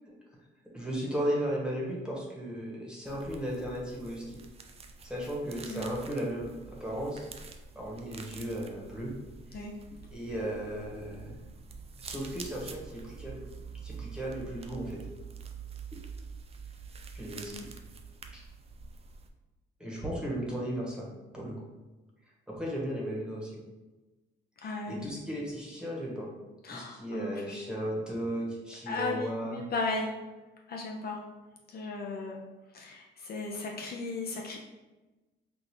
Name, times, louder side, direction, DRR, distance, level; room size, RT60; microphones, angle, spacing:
voice 1, 0.7-4.4 5.0-7.3 7.7-9.1 9.5-9.6 10.1-11.4 12.0-13.4 13.8-15.0 17.1-17.7 18.3-18.4 19.8-21.1 21.3-21.6 22.5-23.6 24.6-26.3 26.7-29.6, equal, 5° right, -4 dB, 1.1 m, -35 dB
sound 1, 3.0-19.3, right 5 dB, 30° right, 0.4 m, -46 dB
voice 2, 24.6-25.2 26.6-27.6 28.9-30.2 30.7-31.2 31.7-32.4 32.7-34.6, left 3 dB, 50° left, 0 dB, 0.5 m, -36 dB
3.6 x 2.5 x 3.0 m, 1.2 s
cardioid pair, 90°, 20 cm